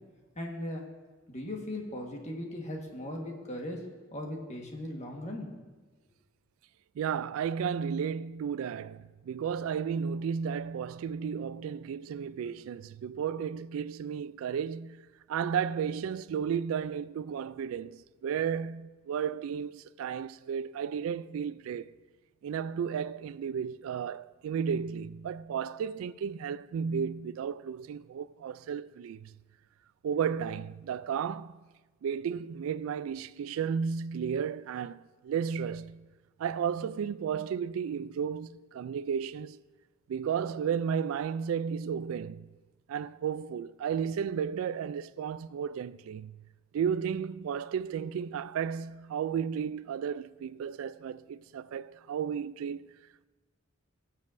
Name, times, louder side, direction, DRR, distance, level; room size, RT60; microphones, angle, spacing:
voice 1, 0.3-0.8 1.3-3.8 4.1-5.5, left 1 dB, 35° left, 1.4 m, -38 dB
voice 2, 7.0-15.0 15.3-21.9 22.4-29.3 30.0-31.6 32.0-36.1 36.4-39.6 40.1-42.5 42.9-46.4 46.7-52.9, right 7 dB, 85° right, 0.3 m, -33 dB
20.0 x 7.3 x 2.6 m
head